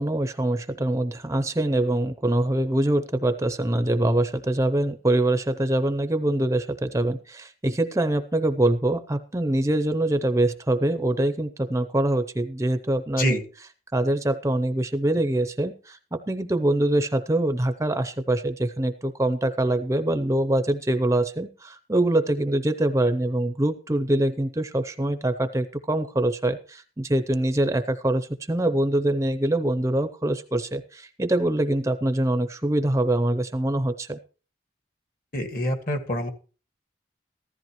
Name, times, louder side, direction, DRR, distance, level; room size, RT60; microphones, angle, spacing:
voice 1, 0.0-13.4 13.9-34.2, right 1 dB, 15° right, 11 dB, 0.6 m, -24 dB
voice 2, 35.3-36.3, equal, 50° left, 5 dB, 1.9 m, -26 dB
15.0 x 13.5 x 3.1 m, 0.37 s
head